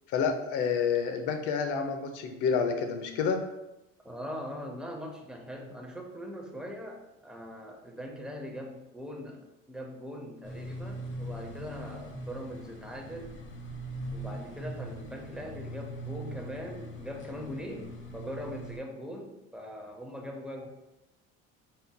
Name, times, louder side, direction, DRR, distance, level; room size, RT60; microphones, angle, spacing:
voice 1, 0.1-3.4, left 6 dB, 75° left, 6 dB, 0.7 m, -29 dB
voice 2, 4.0-13.3 14.1-20.7, equal, 5° right, 1 dB, 0.6 m, -41 dB
sound 1, 10.4-18.8, right 1 dB, 40° left, 0.8 m, -41 dB
5.2 x 4.2 x 2.2 m, 0.96 s
cardioid pair, 130°, 31 cm